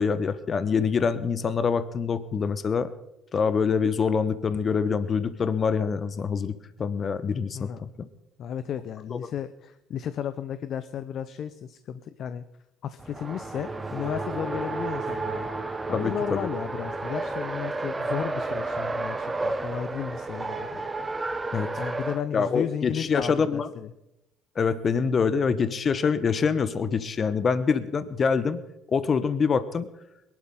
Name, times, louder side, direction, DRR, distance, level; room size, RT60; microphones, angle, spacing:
voice 1, 0.0-2.9 3.3-7.9 15.9-16.4 21.5-21.7 22.3-23.7 24.5-28.6 28.9-29.9, left 5 dB, 40° left, 13 dB, 1.1 m, -25 dB
voice 2, 8.4-12.4 12.8-20.9 21.8-23.9, left 9 dB, 55° left, 13 dB, 0.7 m, -34 dB
Race car auto racing, 13.0-22.2, right 3 dB, 20° right, 1.3 m, -31 dB
22.0 x 12.0 x 3.8 m, 0.89 s
hypercardioid pair, 60°, 0 cm